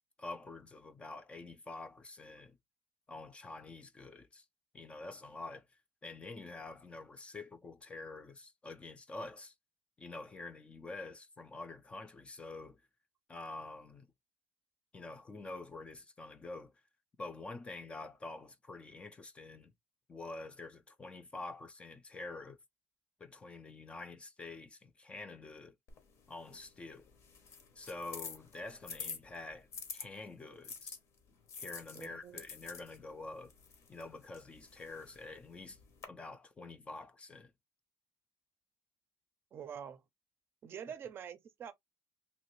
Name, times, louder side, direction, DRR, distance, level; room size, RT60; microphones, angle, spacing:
voice 1, 0.2-2.6 3.1-4.5 4.7-5.7 6.0-9.5 10.0-12.8 13.3-14.1 14.9-16.7 17.2-19.7 20.1-22.6 23.2-25.8 26.3-27.1 27.8-30.9 31.6-33.5 33.9-35.8 36.1-37.5, left 3 dB, 20° left, 0.4 m, -47 dB
sound 1, 25.9-30.1 30.6-36.1, left 5 dB, 50° left, 0.9 m, -49 dB
voice 2, 31.9-32.4 39.5-40.0 40.6-41.7, right 8 dB, 40° right, 0.5 m, -46 dB
3.0 x 2.5 x 3.0 m
cardioid pair, 140°, 6 cm